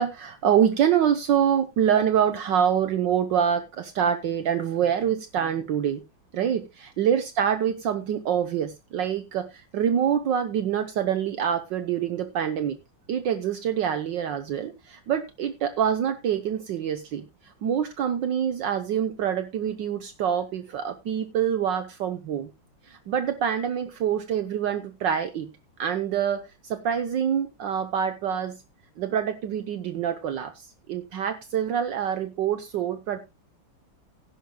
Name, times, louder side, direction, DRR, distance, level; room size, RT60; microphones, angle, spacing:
voice 1, 0.0-6.0 6.3-12.8 13.1-22.5 22.9-25.5 25.8-28.6 29.0-33.2, right 8 dB, 70° right, 8 dB, 1.6 m, -26 dB
17.0 x 10.5 x 2.2 m, 0.24 s
omnidirectional pair, 2.2 m